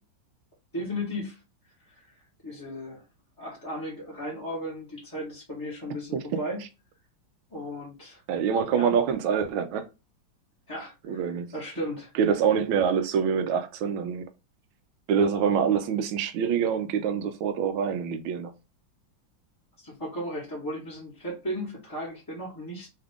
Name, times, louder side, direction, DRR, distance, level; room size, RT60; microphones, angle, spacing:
voice 1, 0.7-1.4 1.9-2.1 2.4-3.0 3.4-6.6 7.5-8.2 8.7-8.9 10.7-12.1 19.8-22.9, equal, 20° left, 0.6 m, -35 dB
voice 2, 8.3-9.9 11.1-11.5 12.2-14.3 15.1-18.5, right 7 dB, 90° right, 1.4 m, -25 dB
3.6 x 2.4 x 3.4 m
omnidirectional pair, 2.1 m